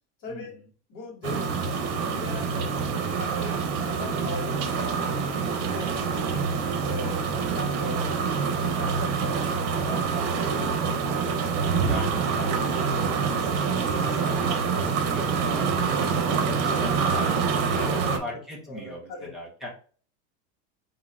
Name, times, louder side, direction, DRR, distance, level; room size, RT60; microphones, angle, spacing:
voice 1, 0.2-0.6 0.9-5.1 5.4-6.5 6.8-11.7 15.4-15.8 17.7-18.3 18.7-19.3, left 2 dB, 40° left, -2 dB, 1.6 m, -41 dB
sound 1, 1.2-18.2, right 5 dB, 80° right, 1.0 m, -26 dB
voice 2, 11.3-16.1 16.4-19.7, equal, ahead, -3 dB, 0.9 m, -40 dB
3.9 x 2.8 x 3.5 m, 0.41 s
cardioid pair, 170°, 35 cm